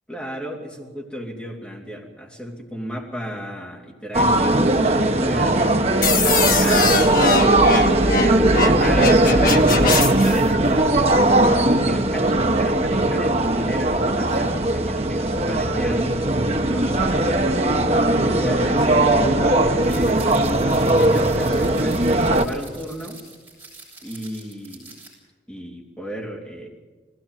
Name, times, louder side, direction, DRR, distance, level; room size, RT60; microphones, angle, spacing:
voice 1, 0.1-8.0 8.6-11.2 11.6-17.5 18.2-23.2 24.0-24.9 25.5-26.7, equal, 5° left, -1 dB, 3.2 m, -33 dB
sound 1, 4.1-22.5, right 1 dB, 35° right, 1.2 m, -19 dB
sound 2, 6.0-10.4, left 4 dB, 50° left, 1.5 m, -22 dB
sound 3, 19.8-25.1, right 3 dB, 10° right, 8.0 m, -44 dB
20.5 x 17.0 x 9.3 m, 1.3 s
head